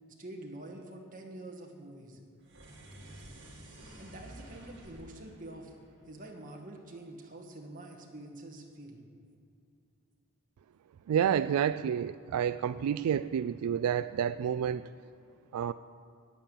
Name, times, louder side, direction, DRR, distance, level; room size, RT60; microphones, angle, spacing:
voice 1, 0.2-2.2 4.0-5.7 6.1-9.0, right 1 dB, 40° right, 0 dB, 1.8 m, -46 dB
sound 1, 2.4-6.8, right 1 dB, 55° right, 2.6 m, -51 dB
voice 2, 11.1-14.8 15.5-15.7, right 8 dB, 85° right, 14 dB, 0.3 m, -29 dB
10.0 x 9.0 x 9.0 m, 2.5 s
head